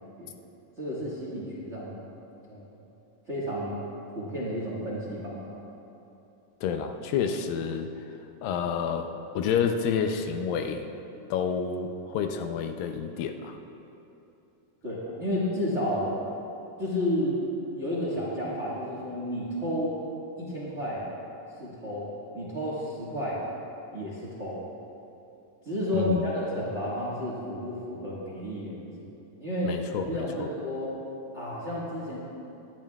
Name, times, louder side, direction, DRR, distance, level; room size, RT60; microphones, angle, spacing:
voice 1, 0.8-2.1 2.5-2.8 3.3-3.8 4.1-5.4 14.8-16.1 16.8-17.4 17.7-20.0 20.4-21.1 21.6-23.4 23.9-24.6 25.6-28.9 29.4-30.9 31.3-32.2, equal, 35° right, -7 dB, 1.2 m, -31 dB
voice 2, 6.6-7.9 8.4-10.9 11.3-13.6 25.9-26.3 29.6-30.3, left 7 dB, 85° left, 6 dB, 2.4 m, -29 dB
19.5 x 12.0 x 2.3 m, 2.8 s
omnidirectional pair, 3.9 m